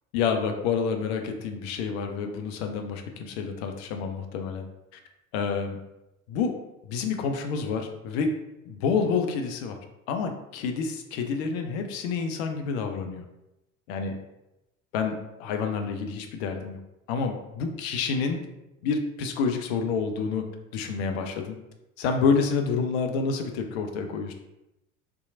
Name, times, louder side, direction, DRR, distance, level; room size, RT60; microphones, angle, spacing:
voice 1, 0.1-4.6 5.3-5.8 6.3-6.5 6.9-8.3 8.7-9.8 10.1-13.2 13.9-14.1 14.9-15.1 15.4-16.8 17.1-18.4 18.8-20.4 20.7-21.6 22.0-24.3, left 5 dB, 50° left, 5 dB, 0.4 m, -28 dB
2.8 x 2.2 x 2.5 m, 0.93 s
figure-of-eight pair, 65°, 44 cm